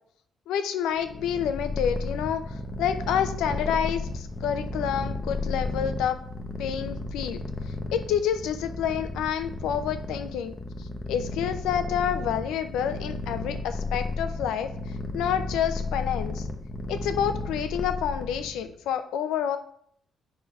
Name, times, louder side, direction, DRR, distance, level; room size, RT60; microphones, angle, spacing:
voice 1, 0.5-6.2 6.6-7.4 7.9-16.5 16.9-19.6, left 8 dB, 90° left, 9 dB, 0.6 m, -28 dB
Purr, 1.0-18.7, left 2 dB, 20° left, 0.9 m, -33 dB
5.7 x 5.1 x 4.7 m, 0.64 s
cardioid pair, 90°, 0 cm